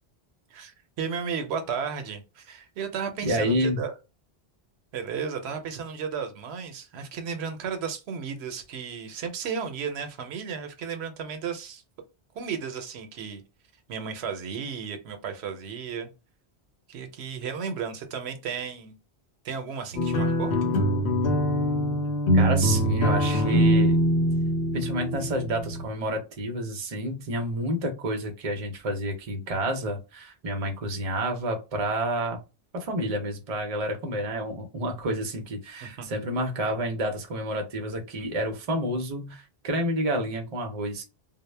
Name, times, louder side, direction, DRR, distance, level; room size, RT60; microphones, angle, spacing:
voice 1, 0.5-3.9 4.9-11.8 12.3-13.4 13.9-16.1 16.9-18.9 19.4-20.5 35.8-36.3, right 6 dB, 80° right, 0.8 m, -34 dB
voice 2, 3.3-3.9 22.3-24.0 24.7-32.4 32.8-41.0, right 1 dB, 45° right, 0.6 m, -29 dB
sound 1, 20.0-25.9, equal, 85° left, 0.9 m, -23 dB
2.0 x 2.0 x 3.1 m
omnidirectional pair, 1.1 m